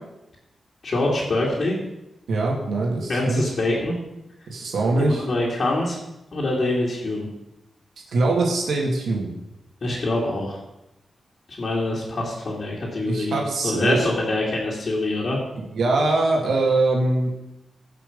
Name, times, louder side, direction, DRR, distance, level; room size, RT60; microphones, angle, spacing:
voice 1, 0.8-1.7 3.1-3.9 5.0-6.0 6.3-7.3 9.8-10.6 11.6-15.4, left 2 dB, 50° left, -5 dB, 2.7 m, -25 dB
voice 2, 2.3-3.5 4.5-5.2 8.1-9.3 13.0-14.1 15.7-17.3, right 2 dB, 85° right, 0 dB, 2.1 m, -22 dB
15.0 x 5.9 x 5.4 m, 0.92 s
wide cardioid pair, 100°, 0 cm